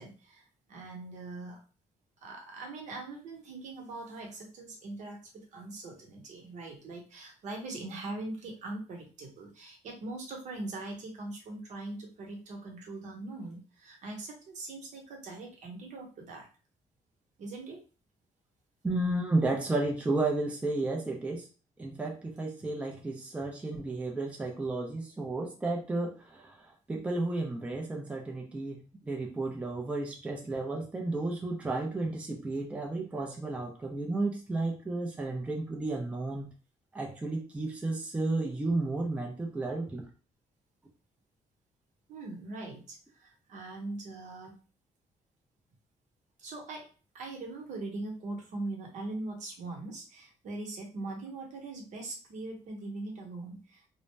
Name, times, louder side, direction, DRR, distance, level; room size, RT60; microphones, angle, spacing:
voice 1, 0.0-1.6 2.2-16.5 17.4-17.8 42.1-44.6 46.4-46.9 47.1-53.9, right 2 dB, 70° right, 1 dB, 0.9 m, -41 dB
voice 2, 18.8-21.5 21.8-36.5 36.9-40.0, right 2 dB, 10° right, 0 dB, 0.4 m, -32 dB
2.5 x 2.0 x 3.2 m, 0.37 s
cardioid pair, 160°, 13 cm